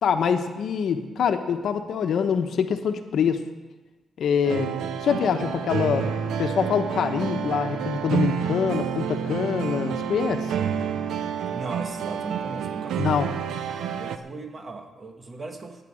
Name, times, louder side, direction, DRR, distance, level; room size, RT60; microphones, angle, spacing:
voice 1, 0.0-3.4 4.2-4.7 5.0-6.1 6.4-10.5 13.0-13.3, left 7 dB, 70° left, 6 dB, 1.2 m, -25 dB
sound 1, 4.4-14.2, right 8 dB, 85° right, 0.8 m, -29 dB
voice 2, 11.5-13.3 14.0-15.8, right 3 dB, 35° right, 5 dB, 1.8 m, -38 dB
16.0 x 9.7 x 6.4 m, 1.2 s
cardioid pair, 110°, 0 cm